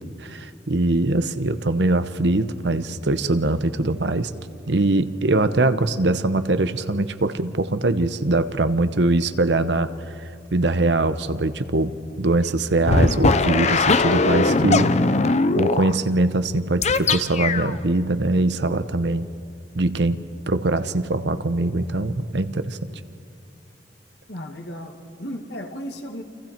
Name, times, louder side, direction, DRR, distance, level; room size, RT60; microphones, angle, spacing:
voice 1, 0.2-4.3 4.7-9.9 10.5-14.9 15.5-19.3 19.7-20.2 20.5-22.9, right 2 dB, 70° right, 12 dB, 1.0 m, -22 dB
sound 1, 12.9-15.9 16.8-17.8, left 3 dB, 40° left, 0.7 m, -20 dB
voice 2, 24.3-26.2, equal, 70° left, 3 dB, 2.2 m, -35 dB
29.5 x 26.5 x 4.5 m, 2.5 s
head